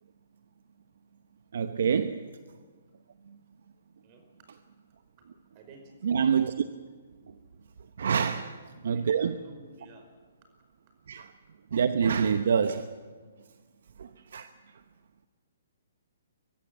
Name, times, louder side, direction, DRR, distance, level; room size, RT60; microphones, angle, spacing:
voice 1, 1.5-2.3 6.0-6.7 8.0-8.5 8.8-9.3 11.1-11.3 11.7-12.9 14.0-14.5, right 7 dB, 65° right, 11 dB, 0.9 m, -26 dB
voice 2, 5.5-6.1 8.1-8.5 8.8-10.1, right 2 dB, 35° right, 6 dB, 5.1 m, -52 dB
23.0 x 14.5 x 9.7 m, 1.5 s
hypercardioid pair, 145°, 0 cm